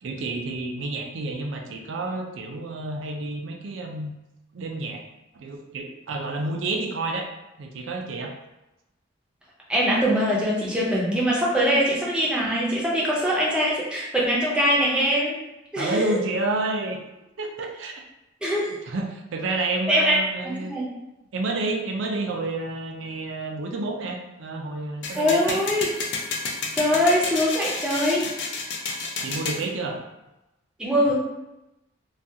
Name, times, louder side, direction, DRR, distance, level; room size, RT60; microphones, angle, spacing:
voice 1, 0.0-4.1 4.5-5.0 5.3-7.3 7.6-8.3 15.8-17.0 17.4-17.9 18.9-20.7 21.3-25.6 29.2-30.0, right 2 dB, 70° right, 2 dB, 0.4 m, -29 dB
voice 2, 9.7-15.3 15.7-16.2 18.4-18.7 19.9-20.2 20.6-20.9 25.1-25.9 26.7-28.2 30.8-31.1, equal, 5° right, -6 dB, 0.5 m, -22 dB
sound 1, 25.0-29.6, left 3 dB, 60° left, 0.4 m, -30 dB
2.3 x 2.2 x 2.7 m, 0.98 s
head